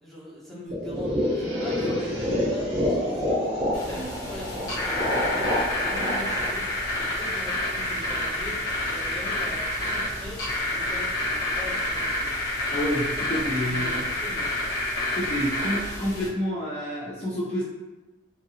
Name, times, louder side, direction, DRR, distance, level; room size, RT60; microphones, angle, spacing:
voice 1, 0.0-6.7 7.0-12.3 13.6-14.5, equal, ahead, -9 dB, 0.9 m, -41 dB
sound 1, 0.7-7.6, left 1 dB, 30° right, 0.8 m, -28 dB
sound 2, 3.7-16.3, left 1 dB, 80° left, 1.0 m, -29 dB
voice 2, 12.7-13.9 15.1-17.6, equal, 35° left, -8 dB, 0.5 m, -28 dB
2.8 x 2.6 x 2.7 m, 1.1 s
head